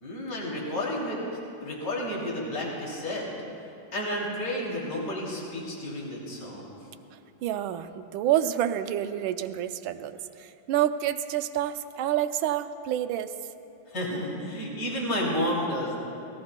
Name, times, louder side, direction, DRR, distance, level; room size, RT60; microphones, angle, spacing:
voice 1, 0.0-1.2 1.6-3.3 3.9-6.7 13.9-16.0, left 1 dB, 45° left, -4 dB, 3.2 m, -31 dB
voice 2, 7.4-13.3, right 11 dB, 80° right, 10 dB, 1.4 m, -28 dB
26.0 x 19.0 x 2.2 m, 2.8 s
omnidirectional pair, 2.2 m